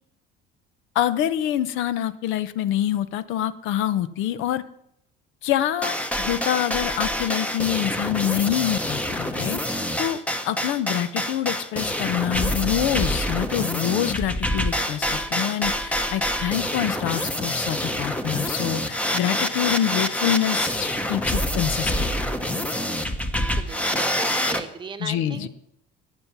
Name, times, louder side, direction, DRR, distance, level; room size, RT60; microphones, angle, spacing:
voice 1, 0.9-4.6 5.4-10.2 10.4-22.1 25.0-25.5, left 11 dB, 70° left, 15 dB, 0.7 m, -26 dB
sound 1, 5.8-24.6, equal, 5° left, 0.9 m, -26 dB
voice 2, 23.5-25.5, right 5 dB, 25° right, 7 dB, 1.0 m, -38 dB
14.5 x 9.7 x 6.0 m, 0.76 s
cardioid pair, 140°, 21 cm